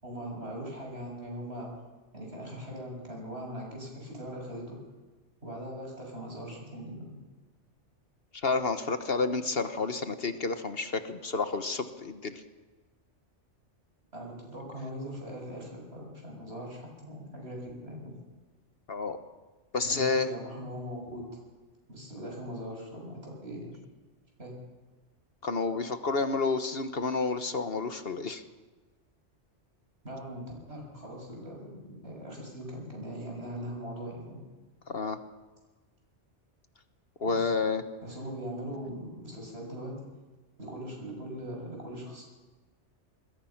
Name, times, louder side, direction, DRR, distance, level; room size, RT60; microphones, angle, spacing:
voice 1, 0.0-1.7 2.1-4.8 5.4-7.2 14.1-18.2 19.9-21.3 21.9-23.8 24.4-24.6 30.0-34.4 37.2-37.5 38.0-39.9 40.6-42.2, equal, 60° right, -1 dB, 7.4 m, -40 dB
voice 2, 8.3-12.4 18.9-19.2 19.7-20.3 25.4-28.4 34.9-35.2 37.2-37.8, left 4 dB, 55° left, 9 dB, 1.4 m, -30 dB
26.0 x 21.0 x 5.9 m, 1.3 s
omnidirectional pair, 1.2 m